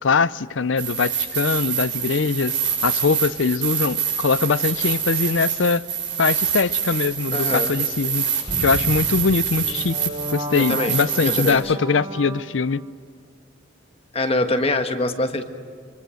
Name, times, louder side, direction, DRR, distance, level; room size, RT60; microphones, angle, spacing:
voice 1, 0.0-5.8 6.2-8.2 8.6-12.8, left 4 dB, 85° left, 0.6 m, -22 dB
sound 1, 0.8-11.5, right 8 dB, 70° right, 6.2 m, -25 dB
voice 2, 7.3-7.7 10.5-11.0 11.2-11.8 14.1-15.4, left 2 dB, 35° left, 1.5 m, -24 dB
sound 2, 8.5-12.9, right 1 dB, 30° right, 1.2 m, -33 dB
25.5 x 24.5 x 6.5 m
head